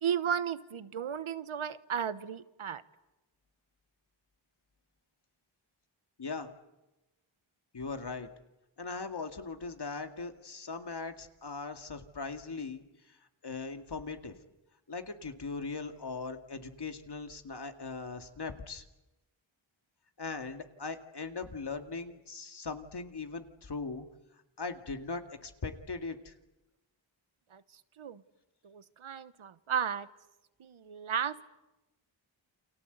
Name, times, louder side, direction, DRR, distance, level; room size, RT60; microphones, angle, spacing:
voice 1, 0.0-2.8 27.5-27.6 28.0-28.2 28.6-30.1 30.6-31.4, right 8 dB, 85° right, 14 dB, 1.2 m, -34 dB
voice 2, 6.2-6.5 7.7-8.3 8.8-13.2 13.4-14.3 14.9-18.8 20.2-24.1 24.6-26.3, left 4 dB, 55° left, 6 dB, 2.2 m, -39 dB
29.0 x 24.5 x 8.1 m, 1.0 s
wide cardioid pair, 100°, 48 cm